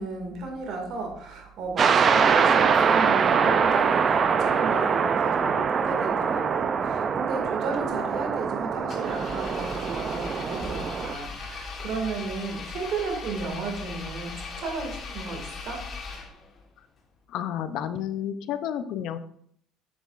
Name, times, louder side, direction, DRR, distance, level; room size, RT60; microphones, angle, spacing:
voice 1, 0.0-15.9, right 4 dB, 60° right, 2 dB, 2.1 m, -34 dB
sound 1, 1.8-11.1, right 6 dB, 40° right, 0.5 m, -23 dB
Engine, 8.9-16.6, left 4 dB, 40° left, 1.4 m, -38 dB
voice 2, 17.3-19.2, left 10 dB, 65° left, 11 dB, 0.6 m, -31 dB
7.3 x 7.0 x 2.5 m, 0.64 s
supercardioid pair, 95°, 0 cm